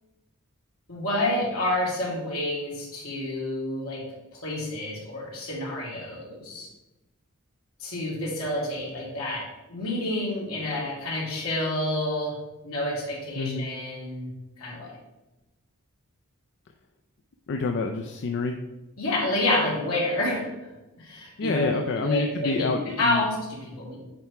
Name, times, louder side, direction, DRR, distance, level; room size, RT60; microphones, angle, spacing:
voice 1, 0.9-4.0 4.3-6.7 7.8-12.3 12.6-14.3 14.6-14.9 19.0-20.7 21.0-21.7 22.0-24.0, left 1 dB, 80° left, -5 dB, 2.6 m, -29 dB
voice 2, 13.4-13.7 17.5-18.6 21.4-23.2, left 3 dB, 55° left, 4 dB, 0.4 m, -27 dB
8.7 x 3.4 x 4.6 m, 1.0 s
head